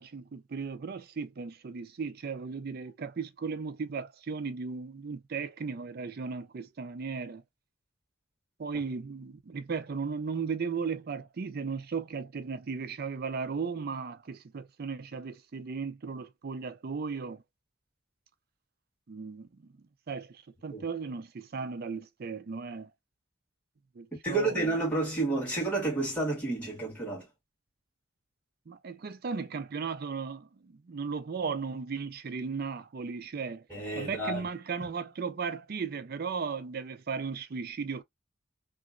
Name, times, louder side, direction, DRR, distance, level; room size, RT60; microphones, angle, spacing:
voice 1, 0.0-7.4 8.6-17.4 19.1-19.7 20.1-22.9 24.0-24.7 28.7-33.6 34.0-38.0, right 5 dB, 50° right, 0.4 m, -36 dB
voice 2, 24.2-27.3 33.7-34.5, right 2 dB, 5° left, 1.7 m, -30 dB
2.9 x 2.4 x 2.4 m
head